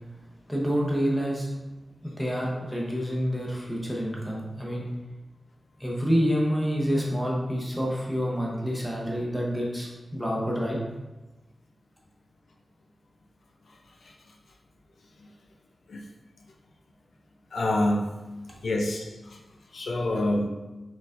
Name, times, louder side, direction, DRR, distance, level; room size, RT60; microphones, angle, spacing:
voice 1, 0.5-1.5 2.0-4.9 5.8-10.8, equal, ahead, -3 dB, 0.8 m, -28 dB
voice 2, 17.5-18.1 18.6-19.4 19.7-20.5, left 1 dB, 70° left, 1 dB, 0.5 m, -26 dB
4.3 x 4.0 x 2.5 m, 1.1 s
wide cardioid pair, 155°, 0 cm